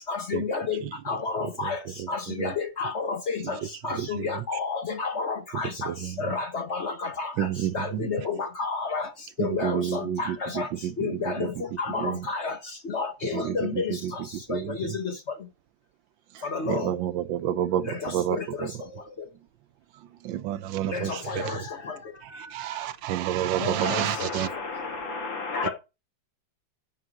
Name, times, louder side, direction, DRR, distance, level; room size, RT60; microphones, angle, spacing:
voice 1, 0.1-0.8 1.1-1.8 2.1-3.6 3.8-5.9 6.2-7.3 7.7-9.1 9.4-10.7 11.0-11.5 11.8-12.5 12.9-13.9 14.5-14.9 16.5-16.9 18.0-18.7 20.9-21.6 23.6-24.0, left 4 dB, 50° left, 0.9 m, -30 dB
voice 2, 1.4-2.5 3.4-3.6 3.9-4.5 5.5-6.3 7.4-8.1 9.4-11.6 12.0-12.3 13.3-15.0 16.3-18.7 19.9-21.6 22.2-24.5, right 11 dB, 85° right, 1.4 m, -30 dB
voice 3, 23.8-25.7, left 4 dB, 80° left, 2.8 m, -32 dB
9.8 x 5.4 x 4.6 m
omnidirectional pair, 2.0 m